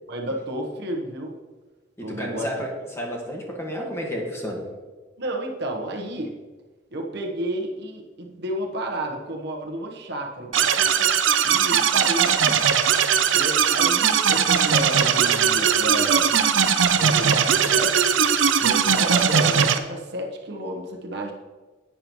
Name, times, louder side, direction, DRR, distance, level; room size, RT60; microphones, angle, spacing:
voice 1, 0.1-1.4 2.0-2.5 5.2-6.4 6.9-12.7 13.3-16.4 17.0-18.1 18.6-21.3, right 1 dB, 60° right, 1 dB, 1.2 m, -31 dB
voice 2, 2.0-4.6, equal, 15° left, -1 dB, 1.6 m, -31 dB
sound 1, 10.5-19.8, right 7 dB, 90° right, 0.6 m, -19 dB
10.5 x 8.7 x 3.1 m, 1.3 s
head